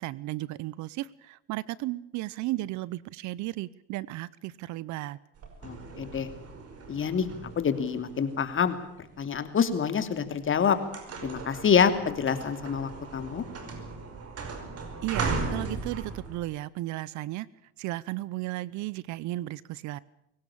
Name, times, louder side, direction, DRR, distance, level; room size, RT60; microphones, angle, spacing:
voice 1, 0.0-5.2 15.0-17.5 17.8-20.0, right 17 dB, 65° right, 22 dB, 0.8 m, -34 dB
sound 1, 5.4-9.5 10.1-10.3 10.6-16.4, right 4 dB, 50° right, 5.4 m, -37 dB
voice 2, 5.6-6.3 6.9-7.3 7.6-8.8 9.2-10.8 11.2-13.4, left 7 dB, 40° left, 10 dB, 2.8 m, -26 dB
23.0 x 18.0 x 8.7 m, 0.77 s
supercardioid pair, 75°, 31 cm